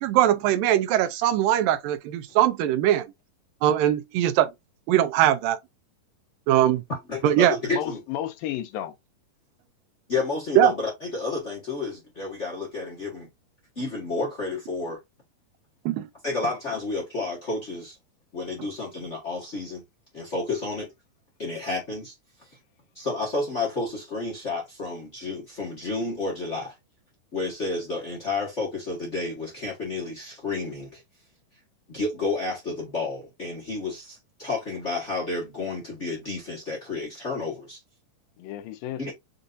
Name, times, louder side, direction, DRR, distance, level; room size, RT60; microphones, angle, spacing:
voice 1, 0.0-3.1 3.6-4.5 4.9-5.6 6.5-6.8 7.2-7.6 10.6-10.7 15.9-16.1, right 12 dB, 85° right, 2.4 m, -21 dB
voice 2, 6.9-8.0 10.1-13.3 13.7-15.0 16.2-17.9 18.3-19.8 20.1-20.9 21.4-22.1 22.4-22.5 22.9-26.7 27.3-31.0 31.9-37.8 39.0-39.1, left 3 dB, 50° left, 0.8 m, -31 dB
voice 3, 7.7-8.9 38.4-39.1, left 12 dB, 90° left, 2.5 m, -32 dB
6.4 x 2.6 x 2.5 m
omnidirectional pair, 3.9 m